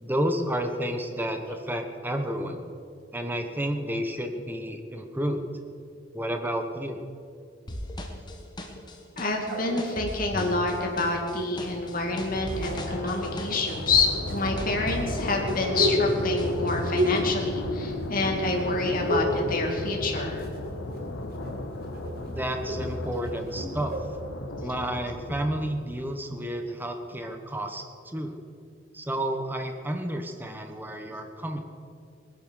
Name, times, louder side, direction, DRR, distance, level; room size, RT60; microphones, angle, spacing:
voice 1, 0.0-2.6 3.1-5.4 6.1-7.0 22.2-23.9 24.6-28.3 28.9-31.6, right 1 dB, 10° right, 5 dB, 1.2 m, -31 dB
sound 1, 7.7-16.1 16.4-17.2, left 1 dB, 20° left, 1.4 m, -38 dB
voice 2, 9.2-20.4, left 3 dB, 45° left, 0 dB, 2.5 m, -27 dB
sound 2, 9.5-11.7 12.4-13.2 14.3-18.3 18.6-19.4 19.7-20.6 20.9-24.2, equal, 50° right, 2.1 m, -32 dB
sound 3, 9.9-26.1, left 1 dB, 80° left, 1.4 m, -35 dB
19.5 x 10.0 x 6.5 m, 2.4 s
head